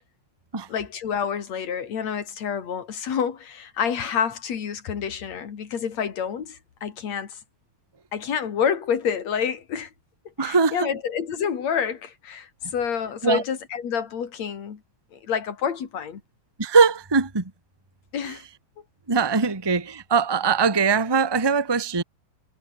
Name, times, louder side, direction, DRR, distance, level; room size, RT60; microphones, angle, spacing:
voice 1, 0.7-7.4 8.1-9.9 10.4-14.8 15.1-16.2 18.1-18.4, left 7 dB, 65° left, 3.7 m, -28 dB
voice 2, 10.4-10.9 13.2-13.4 16.6-17.5 18.2-18.4 19.1-22.0, right 5 dB, 10° right, 1.2 m, -21 dB
omnidirectional pair, 3.4 m